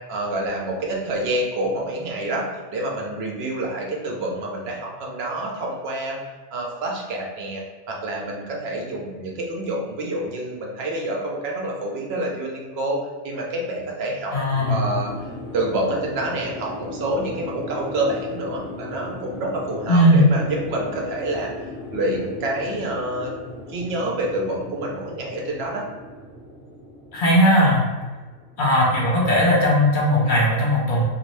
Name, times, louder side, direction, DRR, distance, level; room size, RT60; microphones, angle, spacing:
voice 1, 0.1-6.2 6.5-13.0 13.2-14.3 14.7-15.1 15.5-21.5 21.9-23.3 23.7-25.8, right 1 dB, 80° right, -1 dB, 0.9 m, -27 dB
voice 2, 14.3-14.9 19.9-20.4 27.1-27.8 28.6-31.0, equal, 55° left, -3 dB, 0.8 m, -18 dB
sound 1, 14.5-29.4, left 2 dB, 20° right, 0.9 m, -37 dB
2.6 x 2.3 x 3.1 m, 1.3 s
omnidirectional pair, 1.0 m